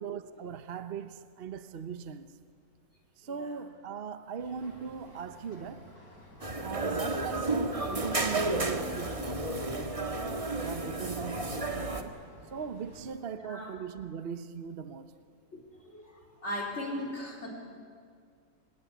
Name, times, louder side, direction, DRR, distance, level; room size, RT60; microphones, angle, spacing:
voice 1, 0.0-2.3 3.2-5.9 6.6-9.5 9.7-10.3 10.6-12.1 12.5-15.1, right 7 dB, 45° right, 1.0 m, -39 dB
Boat Water vehicle, 4.4-13.0, equal, 80° left, 8.7 m, -53 dB
sound 1, 6.4-12.0, right 2 dB, 25° right, 1.5 m, -32 dB
voice 2, 16.4-17.5, left 1 dB, 45° left, 4.1 m, -37 dB
28.0 x 17.0 x 9.5 m
omnidirectional pair, 1.6 m